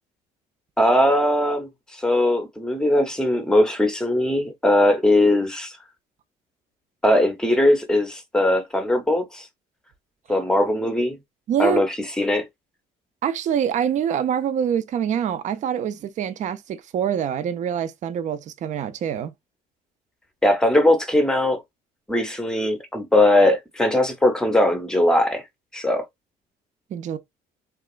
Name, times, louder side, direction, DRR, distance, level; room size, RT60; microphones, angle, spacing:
voice 1, 0.8-5.8 7.0-9.5 10.3-11.2 11.6-12.5 20.4-21.6 22.1-25.5 25.7-26.1, left 1 dB, 5° left, 0.6 m, -20 dB
voice 2, 11.5-11.8 13.2-19.3 26.9-27.2, right 8 dB, 45° right, 0.4 m, -25 dB
2.9 x 2.3 x 2.2 m
cardioid pair, 110°, 17 cm